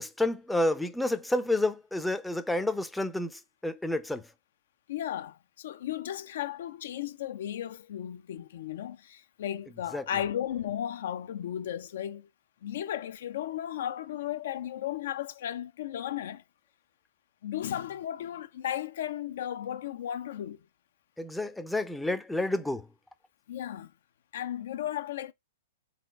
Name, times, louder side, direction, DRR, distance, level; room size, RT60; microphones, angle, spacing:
voice 1, 0.0-4.3 9.9-10.1 21.2-22.9, left 1 dB, 5° left, 0.6 m, -30 dB
voice 2, 4.9-12.3 12.6-16.4 17.4-20.6 23.5-23.9 24.3-25.3, left 11 dB, 60° left, 0.4 m, -35 dB
4.1 x 3.7 x 3.4 m
figure-of-eight pair, 110°, 0 cm